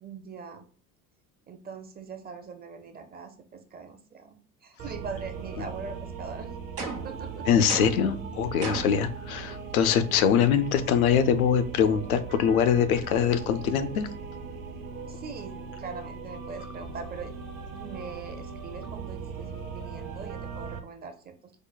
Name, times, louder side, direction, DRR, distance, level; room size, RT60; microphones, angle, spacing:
voice 1, 0.0-0.7 1.5-6.5 7.0-7.5 15.0-17.4 17.6-21.3, right 5 dB, 20° right, 6 dB, 0.5 m, -42 dB
sound 1, 4.8-20.8, right 5 dB, 65° right, 0.9 m, -39 dB
sound 2, 6.8-7.2 7.7-8.1 8.6-9.0, right 3 dB, 90° right, 0.7 m, -35 dB
voice 2, 7.5-14.1, left 8 dB, 70° left, 10 dB, 0.5 m, -23 dB
4.8 x 2.1 x 2.3 m, 0.42 s
figure-of-eight pair, 65°, 45 cm